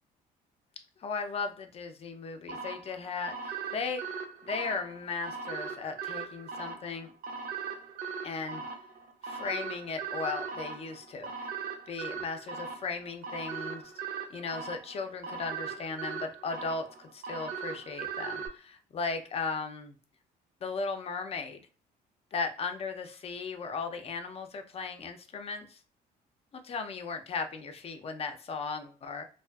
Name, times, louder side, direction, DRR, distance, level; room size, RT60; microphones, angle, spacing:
voice 1, 1.0-7.1 8.2-8.6 9.2-11.5 11.9-13.9 14.3-19.9 20.6-21.6 22.3-25.8 26.5-29.2, left 4 dB, 35° left, 7 dB, 0.5 m, -36 dB
sound 1, 2.5-18.5, right 5 dB, 60° right, 0.5 m, -39 dB
2.4 x 2.3 x 2.3 m, 0.39 s
cardioid pair, 110°, 17 cm